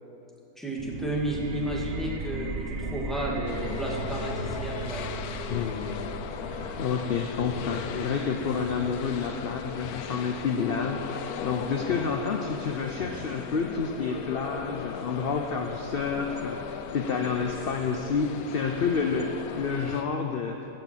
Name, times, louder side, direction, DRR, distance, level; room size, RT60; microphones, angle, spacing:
voice 1, 0.6-5.1, right 1 dB, ahead, -4 dB, 2.0 m, -32 dB
sound 1, 0.8-12.2, right 3 dB, 50° right, 1.0 m, -38 dB
sound 2, 3.5-20.0, left 7 dB, 70° left, 1.1 m, -37 dB
voice 2, 5.5-6.1 6.5-20.6, left 5 dB, 55° left, 3 dB, 0.7 m, -29 dB
17.0 x 6.2 x 7.4 m, 2.8 s
omnidirectional pair, 1.7 m